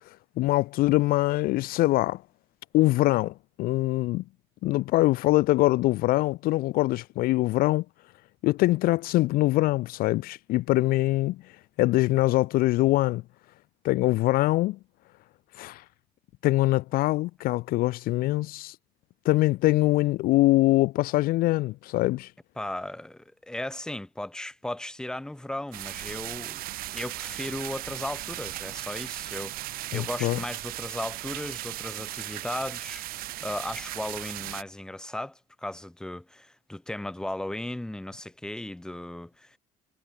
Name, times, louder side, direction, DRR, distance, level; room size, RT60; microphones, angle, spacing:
voice 1, 0.4-2.2 2.7-4.2 4.6-7.8 8.4-11.4 11.8-13.2 13.8-14.8 15.6-15.8 16.4-18.7 19.2-22.3 29.9-30.4, left 18 dB, 60° left, 0.9 m, -23 dB
voice 2, 22.6-26.6 26.9-39.6, left 1 dB, 5° left, 3.1 m, -36 dB
sound 1, 25.7-34.6, right 17 dB, 65° right, 6.7 m, -37 dB
cardioid pair, 160°, 17 cm